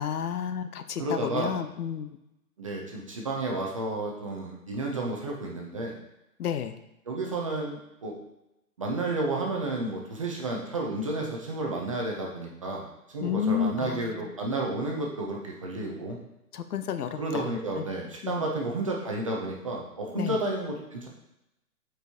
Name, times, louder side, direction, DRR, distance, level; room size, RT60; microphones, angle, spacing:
voice 1, 0.0-2.2 6.4-6.7 13.2-14.3 16.5-17.8 18.2-18.4 20.1-20.4, left 8 dB, 75° left, 10 dB, 0.7 m, -31 dB
voice 2, 1.0-1.5 2.6-5.9 7.1-8.1 8.8-16.2 17.1-21.1, right 2 dB, 25° right, -1 dB, 0.4 m, -31 dB
7.9 x 4.5 x 2.7 m, 0.87 s
hypercardioid pair, 140°, 46 cm